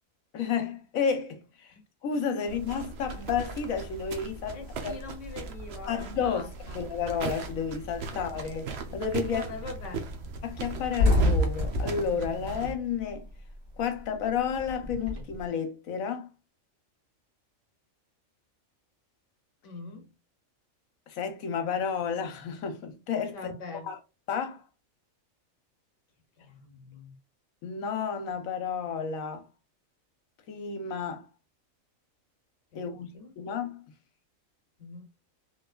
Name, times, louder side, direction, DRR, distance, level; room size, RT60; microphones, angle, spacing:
voice 1, 0.3-1.7 2.0-5.0 5.9-9.5 10.4-13.3 13.8-16.3 21.1-23.5 23.8-24.0 24.3-24.6 27.6-29.5 30.5-31.3 32.7-33.8, left 6 dB, 80° left, 1.2 m, -31 dB
sound 1, 2.5-12.7, right 4 dB, 60° right, 0.8 m, -39 dB
voice 2, 4.5-6.8 9.3-10.1 19.6-20.1 23.3-23.9 26.4-27.2 32.7-33.3 34.8-35.0, left 4 dB, 65° left, 1.2 m, -43 dB
sound 2, 9.6-9.7 10.0-10.2 10.5-13.5 13.8-15.4, left 1 dB, 90° right, 1.8 m, -27 dB
3.6 x 3.1 x 2.3 m
omnidirectional pair, 1.4 m